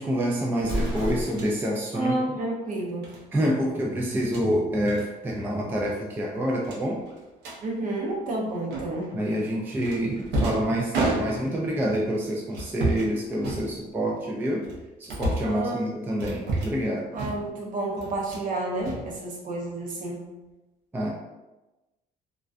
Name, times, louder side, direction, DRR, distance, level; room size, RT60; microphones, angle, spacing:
voice 1, 0.0-2.2 3.3-7.0 9.1-14.6 15.0-17.1 20.9-21.1, equal, 10° right, -3 dB, 0.3 m, -27 dB
Explosion, 0.6-1.7, equal, 30° right, 1.0 m, -30 dB
sound 1, 1.3-1.5 3.0-3.2 4.1-4.5 4.9-5.1 5.4-5.6 5.9-6.0 6.6-7.6 8.7-9.1 9.8-11.7 12.5-13.1 13.4-14.1 14.6-15.6 16.2-16.9 17.1-17.6 18.0-18.5 18.8-19.6, right 2 dB, 90° right, 0.6 m, -31 dB
voice 2, 1.9-3.1 7.6-9.1 15.4-15.8 17.1-20.2, right 2 dB, 50° right, -2 dB, 0.7 m, -30 dB
2.3 x 2.2 x 2.4 m, 1.1 s
cardioid pair, 110°, 17 cm